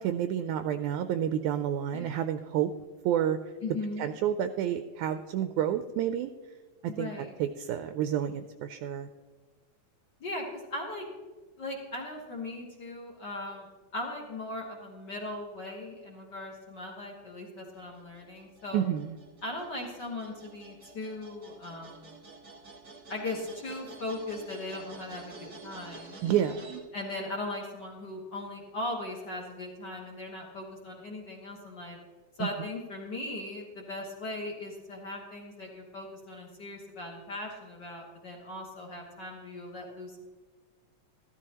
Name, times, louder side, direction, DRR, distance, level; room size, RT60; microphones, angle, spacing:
voice 1, 0.0-2.7 3.1-3.4 4.0-6.3 7.0-7.1 7.4-9.1 18.7-19.2 26.2-26.6 32.4-32.5, right 10 dB, 80° right, 9 dB, 1.8 m, -29 dB
voice 2, 3.6-4.1 6.9-7.3 10.2-11.1 11.6-18.8 19.4-22.1 23.1-26.2 26.9-32.0 32.4-40.2, left 2 dB, 55° left, -1 dB, 1.2 m, -38 dB
sound 1, 17.7-26.8, right 3 dB, 35° right, 1.5 m, -49 dB
14.0 x 13.0 x 2.9 m, 1.4 s
omnidirectional pair, 3.8 m